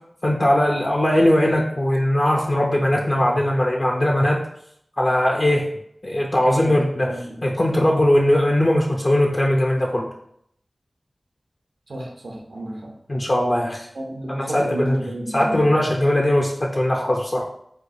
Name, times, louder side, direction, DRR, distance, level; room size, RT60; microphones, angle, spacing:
voice 1, 0.2-4.4 5.0-5.7 6.0-10.1 13.1-13.9 14.3-15.0 15.3-17.4, left 1 dB, 45° left, 0 dB, 0.5 m, -20 dB
voice 2, 6.5-6.8 7.0-7.4 11.9-12.9 13.9-15.6, right 1 dB, 85° right, 0 dB, 0.7 m, -31 dB
4.5 x 2.3 x 2.6 m, 0.71 s
cardioid pair, 40°, 0 cm